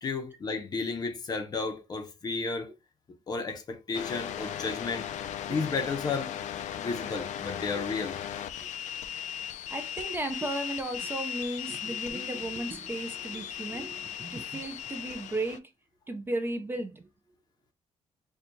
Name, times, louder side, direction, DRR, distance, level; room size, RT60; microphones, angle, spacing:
voice 1, 0.0-2.7 3.3-5.1 5.4-6.3 6.8-8.2, left 4 dB, 35° left, 0.6 m, -33 dB
AT&T Cordless Phone dtmf AM Radio, 3.9-15.6, left 10 dB, 90° left, 0.4 m, -37 dB
voice 2, 9.7-15.7 16.1-17.1, right 2 dB, 20° right, 0.4 m, -35 dB
4.4 x 2.2 x 2.6 m
wide cardioid pair, 175°, 12 cm